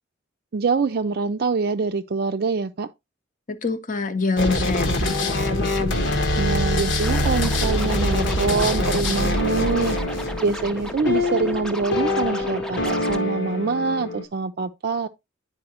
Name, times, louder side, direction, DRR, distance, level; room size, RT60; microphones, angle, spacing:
voice 1, 0.5-2.9 6.4-10.0 10.4-15.1, right 4 dB, 55° right, 0.4 m, -25 dB
voice 2, 3.5-6.0, left 4 dB, 45° left, 0.8 m, -26 dB
sound 1, 4.4-14.2, left 1 dB, 75° left, 1.3 m, -24 dB
Scratching (performance technique), 7.0-13.2, equal, 5° left, 0.5 m, -35 dB
9.7 x 4.7 x 2.8 m
head